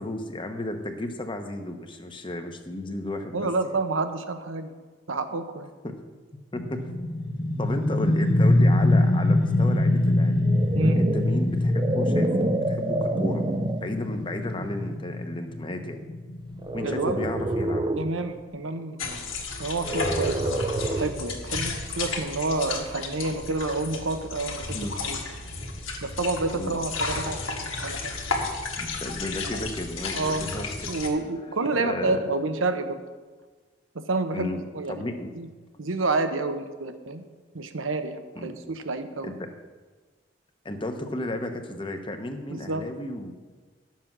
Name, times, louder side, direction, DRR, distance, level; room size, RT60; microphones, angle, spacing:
voice 1, 0.0-3.7 5.8-6.0 6.5-6.8 7.6-10.4 11.0-13.4 13.8-16.0 16.7-17.8 24.7-25.0 26.5-26.8 28.8-31.0 31.7-32.2 34.3-35.3 38.4-38.5 39.2-39.3 40.6-43.3, left 1 dB, 25° left, 6 dB, 0.9 m, -33 dB
voice 2, 3.3-4.7 5.1-5.7 10.7-11.0 16.8-17.2 18.0-19.2 19.6-20.6 20.9-25.2 26.0-28.1 30.1-30.5 30.9-33.0 33.9-35.0 35.4-35.5 35.8-37.2 37.5-39.3 42.5-42.9, right 3 dB, 85° right, 8 dB, 1.0 m, -29 dB
sound 1, 6.5-18.0, left 1 dB, 65° left, 1.4 m, -24 dB
sound 2, 10.3-13.9 14.6-14.8 16.6-18.1 19.8-21.3, right 2 dB, 20° right, 0.4 m, -28 dB
sound 3, 19.0-31.1, left 3 dB, 90° left, 1.8 m, -33 dB
11.5 x 7.5 x 6.1 m, 1.4 s
head